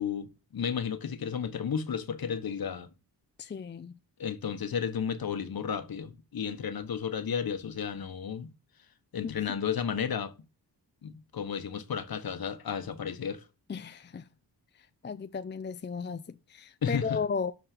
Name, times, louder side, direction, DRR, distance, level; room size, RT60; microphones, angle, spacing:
voice 1, 0.0-2.9 4.2-8.5 9.1-10.3 11.0-13.4 16.8-17.2, left 7 dB, 60° left, 1.4 m, -33 dB
voice 2, 3.4-3.9 9.2-9.4 13.7-14.2 15.0-17.5, left 5 dB, 25° left, 0.6 m, -35 dB
12.0 x 4.3 x 6.7 m
cardioid pair, 90°, 42 cm